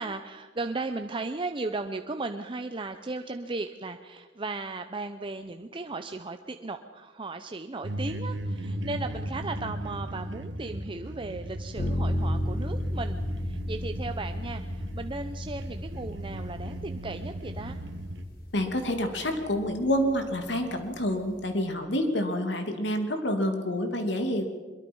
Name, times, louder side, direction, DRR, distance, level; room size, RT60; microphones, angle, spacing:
voice 1, 0.0-17.8, right 3 dB, 30° right, 6 dB, 0.7 m, -36 dB
sound 1, 7.8-18.2, right 1 dB, 85° right, 1.7 m, -37 dB
sound 2, 11.8-21.5, left 1 dB, 55° left, 3.4 m, -34 dB
voice 2, 18.5-24.4, equal, 70° left, 5 dB, 2.7 m, -28 dB
23.0 x 22.5 x 5.5 m, 1.4 s
head